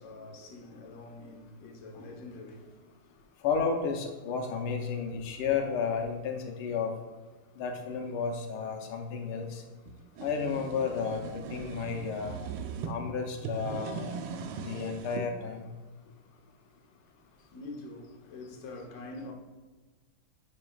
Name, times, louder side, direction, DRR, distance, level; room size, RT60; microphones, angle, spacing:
voice 1, 0.0-2.9 17.1-19.3, left 2 dB, 45° left, 1.1 m, -45 dB
voice 2, 3.4-6.9 7.6-9.6 10.2-12.4 12.9-14.1 14.6-15.7, left 5 dB, 90° left, 1.7 m, -32 dB
sound 1, 9.9-12.9 13.4-15.3, right 6 dB, 85° right, 1.5 m, -39 dB
9.5 x 5.5 x 2.3 m
omnidirectional pair, 2.3 m